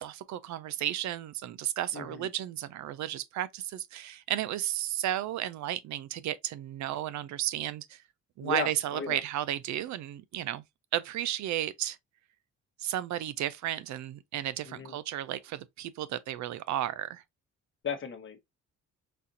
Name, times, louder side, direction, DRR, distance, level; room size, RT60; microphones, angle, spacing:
voice 1, 0.0-8.0 8.4-10.6 10.9-12.0 12.8-17.2, right 12 dB, 70° right, 0.5 m, -33 dB
voice 2, 1.9-2.3 8.4-9.2 14.6-14.9 17.8-18.4, left 6 dB, 40° left, 0.9 m, -35 dB
4.2 x 2.5 x 2.6 m
cardioid pair, 90°, 30 cm